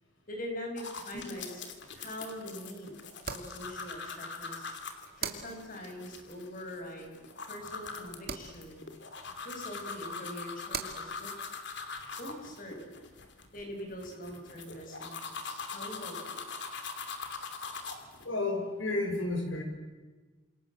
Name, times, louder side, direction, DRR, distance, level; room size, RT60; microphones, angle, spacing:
voice 1, 0.3-1.6 1.9-2.9 3.3-4.7 5.1-7.2 7.4-8.8 9.4-11.3 12.2-12.8 13.5-16.4, equal, 40° left, 2 dB, 6.6 m, -43 dB
sound 1, 0.8-18.3, left 4 dB, 60° left, 3.0 m, -42 dB
sound 2, 1.1-14.0, right 6 dB, 50° right, 2.6 m, -47 dB
voice 2, 18.2-19.6, left 2 dB, 75° left, 4 dB, 6.0 m, -32 dB
28.0 x 28.0 x 7.6 m, 1.3 s
head